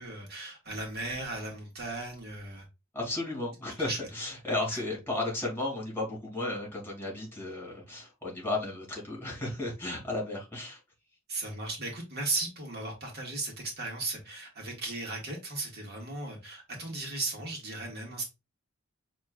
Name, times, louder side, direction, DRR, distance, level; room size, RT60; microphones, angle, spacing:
voice 1, 0.0-2.6 3.8-4.0 4.7-4.8 11.3-18.2, right 2 dB, 50° right, 1.7 m, -36 dB
voice 2, 2.9-10.8, left 2 dB, 10° left, 2.4 m, -34 dB
6.4 x 3.0 x 2.3 m
head